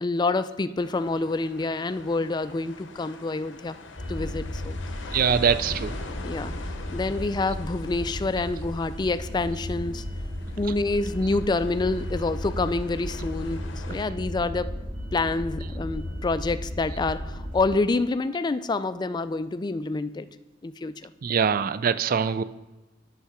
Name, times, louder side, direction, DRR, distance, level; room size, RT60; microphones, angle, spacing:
voice 1, 0.0-3.8 4.1-4.8 6.2-6.5 6.9-10.0 10.6-14.8 15.1-20.3 20.6-21.1, left 3 dB, 25° left, 13 dB, 0.3 m, -27 dB
sound 1, 0.8-14.1, left 3 dB, 85° left, 0.8 m, -44 dB
sound 2, 3.9-17.7, left 1 dB, 65° right, 3.3 m, -34 dB
voice 2, 5.1-6.0 21.2-22.4, right 6 dB, 50° right, 14 dB, 0.4 m, -23 dB
8.5 x 5.7 x 5.7 m, 1.1 s
head